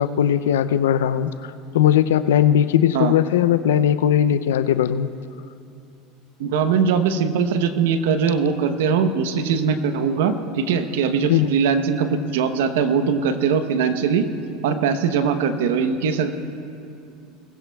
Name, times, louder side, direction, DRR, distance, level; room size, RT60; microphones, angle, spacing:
voice 1, 0.0-1.3 1.7-5.1 11.3-11.5, left 10 dB, 90° left, 13 dB, 0.4 m, -18 dB
voice 2, 6.4-14.3 14.6-16.3, right 6 dB, 80° right, 9 dB, 0.9 m, -21 dB
20.5 x 16.0 x 2.3 m, 2.6 s
supercardioid pair, 100°, 0 cm